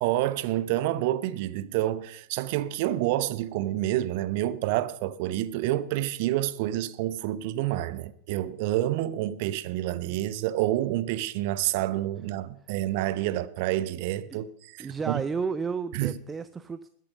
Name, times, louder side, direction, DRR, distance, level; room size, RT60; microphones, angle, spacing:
voice 1, 0.0-15.2 15.9-16.2, right 14 dB, 50° right, 0.8 m, -28 dB
voice 2, 14.8-16.9, right 5 dB, 15° right, 0.5 m, -32 dB
21.0 x 7.6 x 5.5 m
figure-of-eight pair, 90°, 0 cm